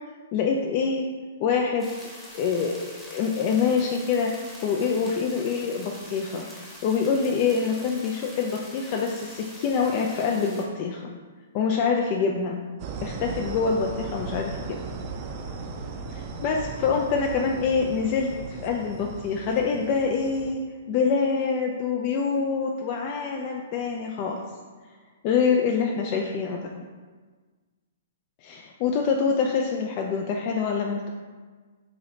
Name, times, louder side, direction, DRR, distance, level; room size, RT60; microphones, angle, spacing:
voice 1, 0.3-1.1 1.4-1.9 2.3-2.8 3.1-4.4 4.6-11.1 11.5-12.7 13.0-14.6 16.1-24.4 25.2-26.7 28.4-31.1, left 5 dB, 40° left, 1 dB, 0.3 m, -25 dB
sound 1, 1.8-10.6, equal, 5° left, 0.9 m, -44 dB
sound 2, 12.8-20.5, right 4 dB, 40° right, 0.4 m, -37 dB
3.7 x 2.8 x 3.2 m, 1.4 s
hypercardioid pair, 125°, 0 cm